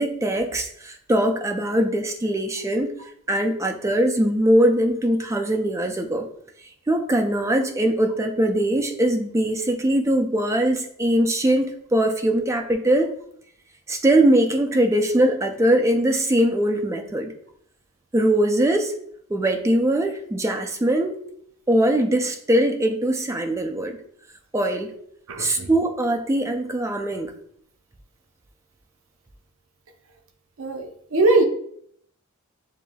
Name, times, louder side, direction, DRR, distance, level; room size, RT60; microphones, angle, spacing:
voice 1, 0.0-2.9 3.3-6.3 6.9-13.1 13.9-17.3 18.1-18.9 19.3-21.2 21.7-24.0 24.5-24.9 25.4-27.3, right 1 dB, 15° right, 5 dB, 0.3 m, -21 dB
voice 2, 25.3-25.7 30.6-31.4, right 2 dB, 60° right, 4 dB, 0.7 m, -21 dB
6.8 x 2.6 x 2.2 m, 0.67 s
head